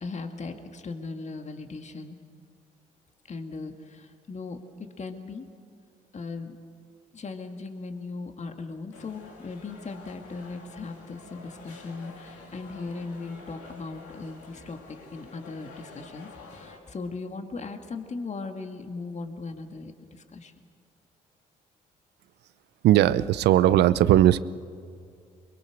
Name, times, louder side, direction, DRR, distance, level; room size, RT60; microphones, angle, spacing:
voice 1, 0.0-2.2 3.3-5.5 6.1-6.6 7.1-20.5, left 3 dB, 40° left, 6 dB, 2.1 m, -38 dB
sound 1, 8.9-16.8, left 4 dB, 85° left, 3.3 m, -48 dB
voice 2, 22.8-24.4, right 13 dB, 70° right, 17 dB, 0.7 m, -18 dB
23.5 x 22.5 x 6.5 m, 2.3 s
hypercardioid pair, 55°, 18 cm